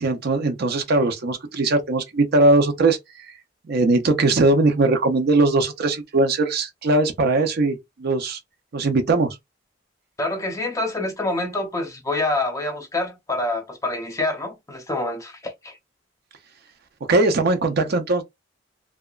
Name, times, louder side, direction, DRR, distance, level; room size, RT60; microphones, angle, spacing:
voice 1, 0.0-3.0 3.7-8.4 8.7-9.4 17.1-18.2, right 2 dB, 55° right, 0.5 m, -20 dB
voice 2, 10.2-15.8, left 2 dB, 15° left, 0.6 m, -26 dB
2.8 x 2.2 x 2.3 m
head